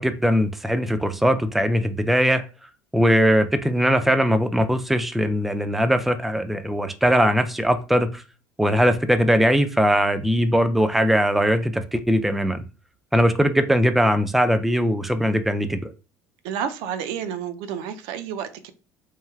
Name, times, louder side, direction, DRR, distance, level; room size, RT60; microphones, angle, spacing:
voice 1, 0.0-2.4 2.9-8.2 8.6-12.6 13.1-15.9, equal, ahead, 9 dB, 0.4 m, -20 dB
voice 2, 16.4-18.7, right 8 dB, 70° right, 10 dB, 0.4 m, -30 dB
3.1 x 2.3 x 2.3 m, 0.33 s
hypercardioid pair, 75°, 9 cm